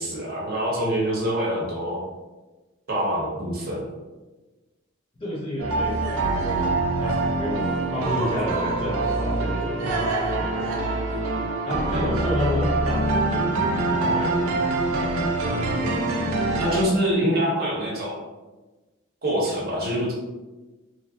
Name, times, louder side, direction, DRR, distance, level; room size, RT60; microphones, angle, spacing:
voice 1, 0.0-2.0 2.9-3.9 16.6-18.2 19.2-20.1, equal, 45° right, -4 dB, 0.8 m, -25 dB
voice 2, 5.2-6.8 7.0-10.0 10.4-10.7 11.6-15.3, left 1 dB, 25° left, -5 dB, 0.8 m, -31 dB
sound 1, 5.6-16.8, right 2 dB, 80° right, 0.5 m, -24 dB
3.1 x 2.4 x 2.6 m, 1.2 s
head